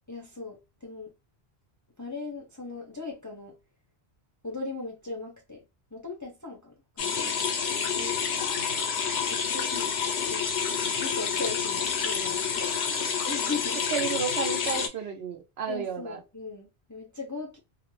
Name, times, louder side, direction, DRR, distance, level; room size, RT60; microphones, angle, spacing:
voice 1, 0.1-1.1 2.0-3.6 4.4-5.6 5.9-7.5 9.2-10.0 10.2-10.5 11.0-12.6 13.3-13.8 15.0-15.1 15.6-17.6, left 3 dB, 25° left, 0.5 m, -38 dB
sound 1, 7.0-14.9, left 6 dB, 85° left, 0.9 m, -28 dB
voice 2, 13.9-16.2, right 6 dB, 75° right, 0.9 m, -32 dB
2.4 x 2.0 x 2.9 m
omnidirectional pair, 1.1 m